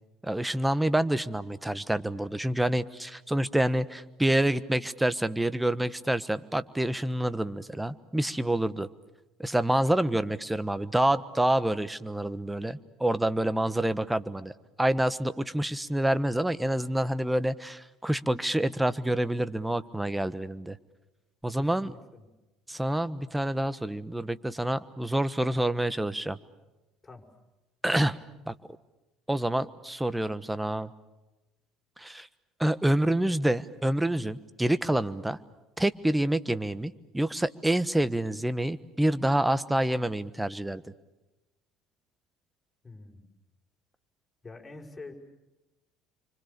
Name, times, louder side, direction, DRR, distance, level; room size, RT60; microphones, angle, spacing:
voice 1, 0.2-8.9 9.4-14.5 14.8-20.8 21.4-21.9 22.7-26.4 27.8-28.2 28.5-28.6 29.3-30.9 32.0-32.3 32.6-35.4 35.8-40.8, right 1 dB, 10° right, 15 dB, 1.3 m, -27 dB
voice 2, 21.5-22.3 27.0-27.3 42.8-43.3 44.4-45.1, left 3 dB, 20° left, 0 dB, 5.9 m, -46 dB
28.0 x 25.0 x 6.9 m, 1.0 s
hypercardioid pair, 65°, 0 cm